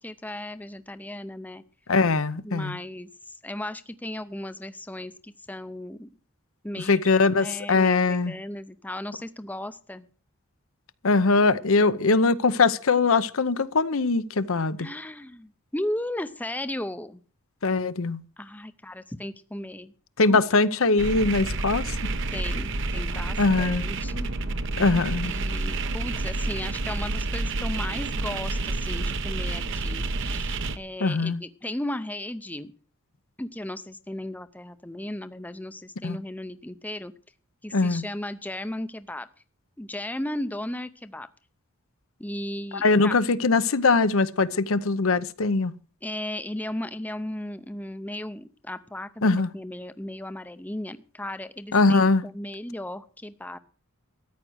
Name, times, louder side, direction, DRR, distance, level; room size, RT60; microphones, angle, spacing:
voice 1, 0.0-1.6 2.4-6.1 6.6-7.0 7.4-10.1 14.8-17.2 18.4-19.9 20.3-20.4 22.3-24.3 24.9-32.7 33.4-37.1 37.6-39.3 39.8-41.3 42.2-43.1 46.0-53.6, left 1 dB, 10° left, 0.6 m, -36 dB
voice 2, 1.9-2.8 6.8-8.3 11.0-14.8 17.6-18.2 20.2-22.0 23.4-23.9 24.8-25.3 31.0-31.4 36.0-36.2 37.7-38.0 42.8-45.7 49.2-49.5 51.7-52.2, left 3 dB, 70° left, 0.8 m, -22 dB
sound 1, 21.0-30.8, right 2 dB, 60° right, 1.0 m, -29 dB
14.0 x 9.8 x 6.3 m
head